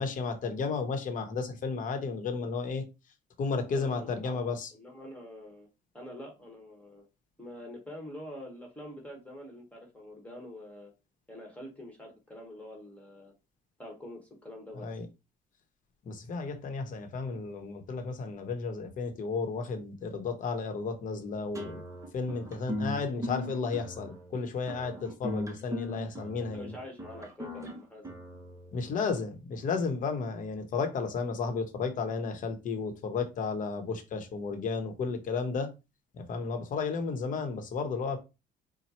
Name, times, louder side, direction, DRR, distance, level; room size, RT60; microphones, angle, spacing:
voice 1, 0.0-2.8 3.4-4.7 14.8-15.1 16.0-21.8 22.1-26.7 28.7-35.7 36.1-38.2, left 4 dB, 50° left, 1.0 m, -33 dB
voice 2, 3.5-5.7 5.9-7.1 7.4-10.9 11.3-13.3 13.8-14.9 25.0-25.1 26.0-28.1, left 1 dB, 10° left, 1.4 m, -46 dB
sound 1, 21.5-29.0, left 1 dB, 20° right, 1.0 m, -39 dB
4.4 x 2.2 x 4.2 m
cardioid pair, 110°, 17 cm